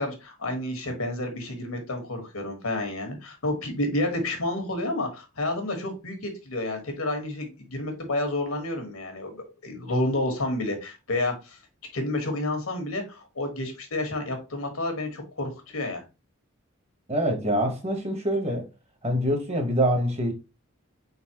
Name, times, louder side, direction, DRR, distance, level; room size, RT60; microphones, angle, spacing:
voice 1, 0.0-11.6 11.9-16.0, left 1 dB, 90° left, 1.4 m, -30 dB
voice 2, 17.1-18.7 19.0-20.3, equal, 30° right, 1.0 m, -25 dB
4.1 x 4.0 x 2.9 m
head